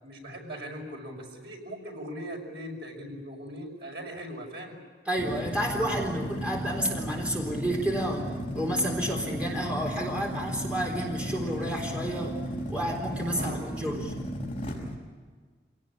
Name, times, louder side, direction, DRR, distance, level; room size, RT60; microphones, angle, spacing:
voice 1, 0.0-4.8 13.3-13.6, equal, 75° right, 1 dB, 6.0 m, -40 dB
voice 2, 5.1-12.4 12.7-14.1, equal, 5° right, -1 dB, 4.0 m, -30 dB
sound 1, 5.2-14.9, equal, 30° left, 5.4 m, -35 dB
26.5 x 18.5 x 10.0 m, 1.5 s
head